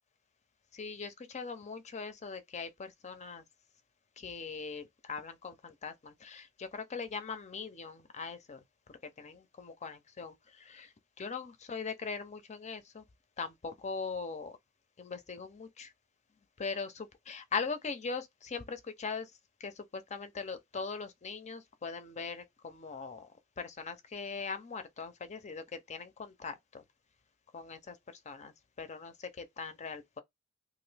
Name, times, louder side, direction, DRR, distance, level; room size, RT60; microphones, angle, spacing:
voice 1, 0.7-3.4 4.2-8.6 9.0-13.0 13.4-14.6 15.0-15.9 16.6-19.3 19.6-26.8 27.5-28.0 28.3-30.2, left 5 dB, 35° left, 0.5 m, -41 dB
2.9 x 2.5 x 3.3 m
head